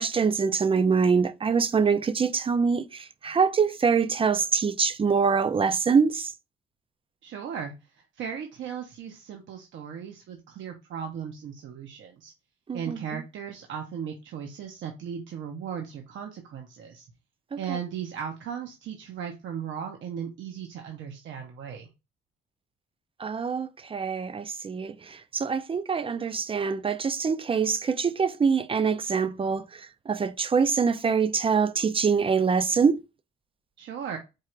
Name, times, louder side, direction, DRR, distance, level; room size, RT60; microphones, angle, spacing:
voice 1, 0.0-6.3 12.7-13.0 17.5-17.8 23.2-33.0, right 5 dB, 30° right, 0.4 m, -24 dB
voice 2, 7.2-12.3 12.7-17.1 17.6-21.9 33.8-34.2, right 7 dB, 70° right, 0.8 m, -37 dB
4.6 x 2.4 x 4.4 m
cardioid pair, 90°, 20 cm